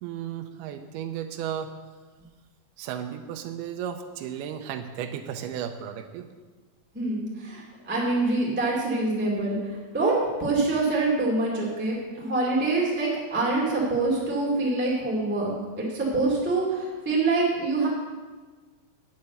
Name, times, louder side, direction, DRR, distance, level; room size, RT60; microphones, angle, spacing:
voice 1, 0.0-1.7 2.8-6.3, right 9 dB, 85° right, 5 dB, 2.6 m, -34 dB
voice 2, 6.9-17.9, right 2 dB, 5° right, -4 dB, 1.5 m, -25 dB
8.7 x 7.1 x 7.9 m, 1.4 s
omnidirectional pair, 4.5 m